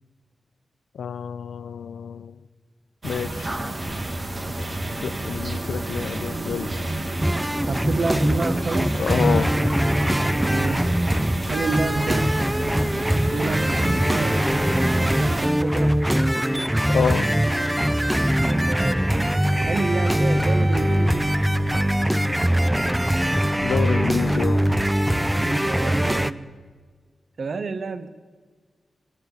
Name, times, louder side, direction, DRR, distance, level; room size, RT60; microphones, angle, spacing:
voice 1, 0.9-2.4 3.0-3.6 5.0-6.7 9.0-9.5 16.9-17.3 23.6-24.7, left 7 dB, 85° left, 15 dB, 0.5 m, -27 dB
sound 1, 3.0-15.5, right 1 dB, 35° right, 1.4 m, -30 dB
sound 2, 7.2-26.3, equal, 10° right, 0.5 m, -22 dB
voice 2, 7.7-9.0 10.3-10.9 11.5-12.4 13.3-14.5 15.0-16.0 18.4-19.1 19.6-21.3 25.4-26.4 27.4-28.1, right 4 dB, 65° right, 13 dB, 0.7 m, -29 dB
18.0 x 8.3 x 8.1 m, 1.5 s
cardioid pair, 55°, 0 cm